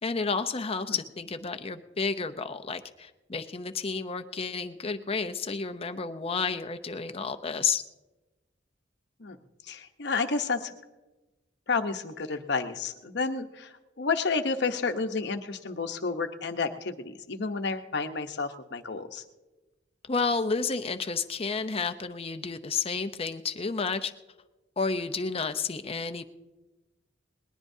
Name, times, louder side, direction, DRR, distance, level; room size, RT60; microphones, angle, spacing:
voice 1, 0.0-7.8 20.1-24.1 24.8-26.2, left 4 dB, 30° left, 9 dB, 0.7 m, -31 dB
voice 2, 9.6-10.7 11.7-19.2, left 4 dB, 65° left, 7 dB, 1.0 m, -31 dB
20.5 x 19.5 x 2.7 m, 1.1 s
head